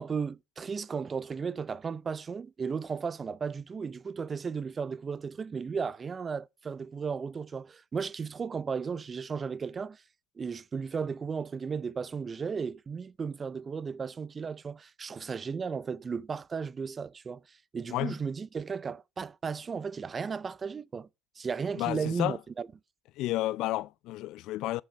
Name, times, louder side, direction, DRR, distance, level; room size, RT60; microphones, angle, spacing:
voice 1, 0.0-10.0 10.4-21.1 21.4-22.7, right 5 dB, 25° right, 0.5 m, -35 dB
voice 2, 21.8-22.4 23.2-24.8, left 16 dB, 65° left, 0.5 m, -31 dB
14.0 x 6.4 x 4.5 m
cardioid pair, 120°, 0 cm